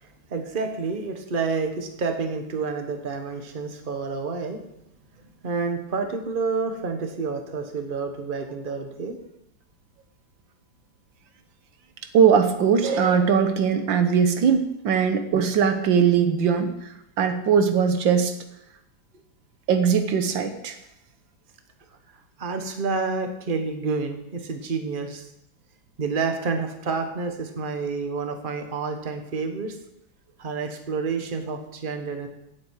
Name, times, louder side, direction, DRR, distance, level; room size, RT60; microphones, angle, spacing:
voice 1, 0.0-4.6 5.4-9.2 22.4-25.3 26.0-29.8 30.4-32.3, right 4 dB, 30° right, 5 dB, 1.3 m, -29 dB
voice 2, 12.1-18.4 19.7-20.8, right 7 dB, 90° right, 8 dB, 1.8 m, -20 dB
17.0 x 7.9 x 4.8 m, 0.82 s
omnidirectional pair, 2.0 m